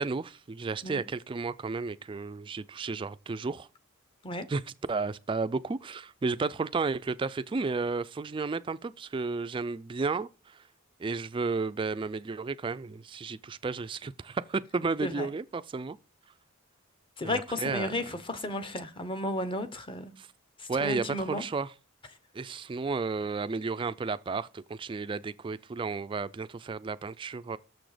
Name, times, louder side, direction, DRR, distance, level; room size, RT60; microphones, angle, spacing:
voice 1, 0.0-3.7 4.5-4.6 4.9-10.3 11.0-16.0 17.2-17.9 20.2-20.3 20.7-21.7 22.3-27.6, right 4 dB, 25° right, 0.3 m, -32 dB
voice 2, 17.2-20.1 20.6-21.4, left 1 dB, 25° left, 0.8 m, -33 dB
6.9 x 6.0 x 5.0 m
head